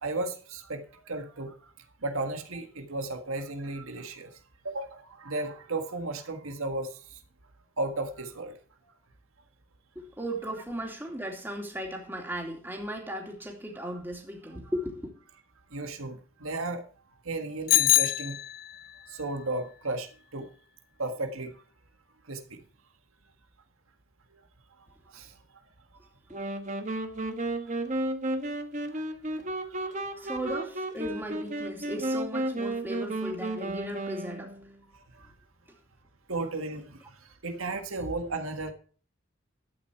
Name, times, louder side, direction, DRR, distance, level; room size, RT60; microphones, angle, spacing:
voice 1, 0.0-1.6 2.0-4.3 4.6-7.2 7.8-8.6 14.5-14.6 15.7-16.8 17.2-18.4 19.1-20.5 21.0-21.5 22.3-22.6 25.1-25.3 28.9-29.0 29.7-30.2 35.1-35.3 36.3-38.7, right 2 dB, 80° right, 6 dB, 1.6 m, -34 dB
voice 2, 9.9-15.1 30.2-34.5, equal, 10° right, 1 dB, 2.7 m, -36 dB
Bicycle bell, 17.7-18.9, left 16 dB, 45° left, 0.5 m, -24 dB
sound 1, 26.3-34.8, right 1 dB, 35° right, 1.3 m, -33 dB
12.5 x 8.9 x 4.5 m, 0.42 s
head